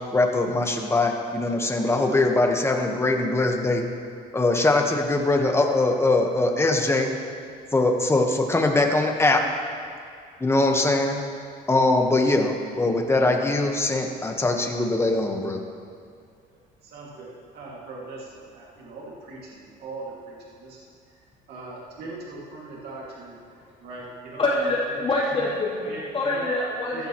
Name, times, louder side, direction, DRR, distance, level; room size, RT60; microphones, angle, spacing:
voice 1, 0.1-3.8 4.3-7.1 7.7-9.4 10.4-11.2 11.7-15.6, left 2 dB, 15° left, 3 dB, 1.3 m, -22 dB
voice 2, 16.8-20.8 21.1-21.2 21.5-23.4 23.8-25.0 25.3-25.5 25.9-26.5 26.9-27.1, right 3 dB, 70° right, -5 dB, 2.4 m, -40 dB
voice 3, 24.4-27.1, left 2 dB, 35° left, -8 dB, 3.4 m, -25 dB
14.5 x 14.5 x 3.1 m, 2.2 s
cardioid pair, 110°, 17 cm